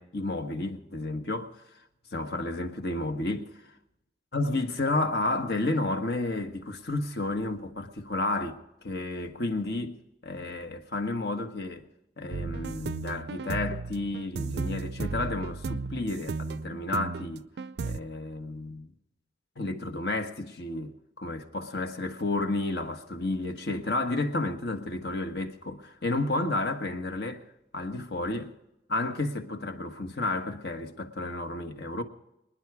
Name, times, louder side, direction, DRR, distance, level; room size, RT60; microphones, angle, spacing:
voice 1, 0.0-1.6 2.1-3.5 4.3-10.0 10.2-11.9 12.2-17.5 17.8-18.9 19.6-27.4 27.7-28.5 28.9-32.0, left 2 dB, 70° left, 1.3 m, -31 dB
sound 1, 12.3-18.0, right 4 dB, 75° right, 0.4 m, -34 dB
25.5 x 10.5 x 4.7 m
head